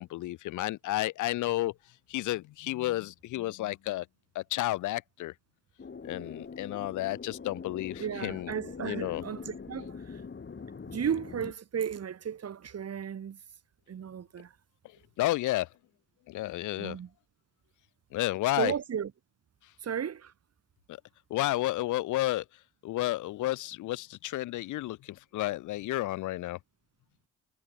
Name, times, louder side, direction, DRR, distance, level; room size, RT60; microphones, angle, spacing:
voice 1, 0.0-1.7 2.1-4.1 4.3-5.3 6.0-8.5 8.8-9.2 14.8-15.7 16.3-17.0 18.1-18.7 20.9-21.0 21.3-22.4 22.8-26.6, left 16 dB, 65° left, 1.2 m, -31 dB
sound 1, 5.8-11.5, left 5 dB, 35° left, 5.6 m, -43 dB
voice 2, 8.0-10.2 10.9-13.4 13.9-14.5 16.8-17.1 18.6-19.1 19.8-20.3, right 8 dB, 50° right, 3.8 m, -34 dB
hypercardioid pair, 50°, 33 cm